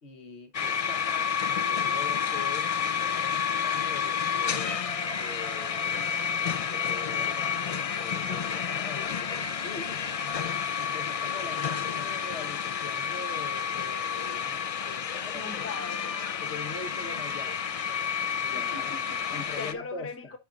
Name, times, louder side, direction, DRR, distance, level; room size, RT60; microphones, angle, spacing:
voice 1, 0.0-6.0 6.6-10.2 10.8-15.4 16.4-17.6 18.4-19.0 19.3-20.3, left 4 dB, 75° left, 1.3 m, -43 dB
sound 1, 0.5-19.7, left 7 dB, 55° left, 0.4 m, -30 dB
Bowed string instrument, 4.5-11.7, equal, 30° left, 1.7 m, -45 dB
voice 2, 15.3-16.2 18.5-20.4, left 3 dB, 15° left, 0.7 m, -40 dB
12.5 x 4.4 x 2.4 m
omnidirectional pair, 1.1 m